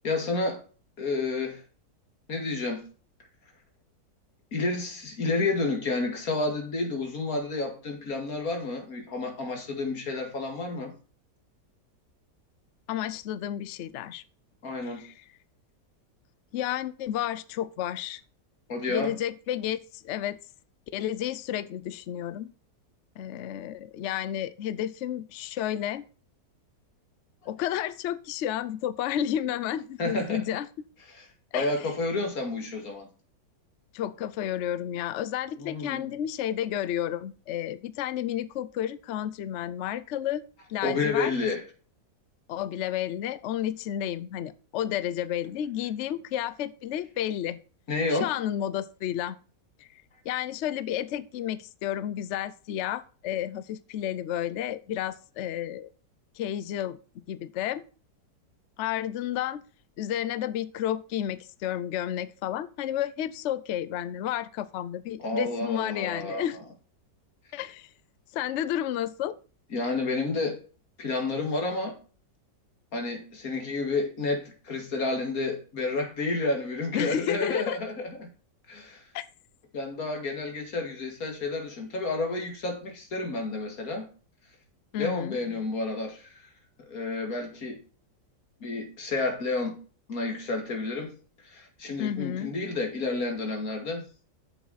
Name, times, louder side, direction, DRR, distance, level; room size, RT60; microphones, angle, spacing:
voice 1, 0.0-0.6 1.0-1.6 2.3-2.8 4.5-10.9 14.6-15.0 18.7-19.1 30.0-30.4 31.1-31.3 31.5-33.1 35.6-36.1 40.8-41.6 47.9-48.3 65.2-66.6 69.7-70.6 71.0-72.0 72.9-78.3 78.7-79.0 79.7-84.1 85.0-86.3 86.9-87.8 88.6-89.7 90.1-91.2 91.4-94.1, left 3 dB, 55° left, 2.5 m, -30 dB
voice 2, 12.9-14.2 14.8-15.2 16.5-18.2 18.9-20.4 20.9-22.5 23.2-26.1 27.5-30.7 31.5-31.9 33.9-40.4 40.7-41.3 42.5-47.6 48.1-49.4 49.8-49.9 50.2-55.9 56.4-57.0 57.3-57.8 58.8-59.6 60.0-66.6 67.5-67.9 68.3-69.4 76.9-77.8 79.1-79.3 84.9-85.4 92.0-92.5, left 11 dB, 75° left, 0.6 m, -31 dB
8.8 x 7.1 x 4.1 m
omnidirectional pair, 1.8 m